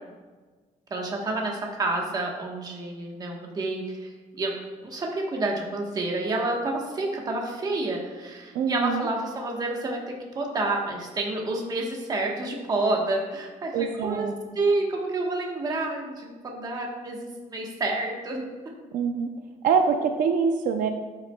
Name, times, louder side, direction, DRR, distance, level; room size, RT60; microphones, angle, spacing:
voice 1, 0.9-4.1 4.4-14.3 14.6-17.2 17.5-18.4, right 2 dB, 30° right, 0 dB, 1.1 m, -29 dB
voice 2, 8.5-9.1 13.7-14.3 18.9-19.3 19.6-20.9, right 6 dB, 80° right, 5 dB, 0.5 m, -24 dB
11.0 x 5.9 x 2.2 m, 1.4 s
cardioid pair, 175°, 13 cm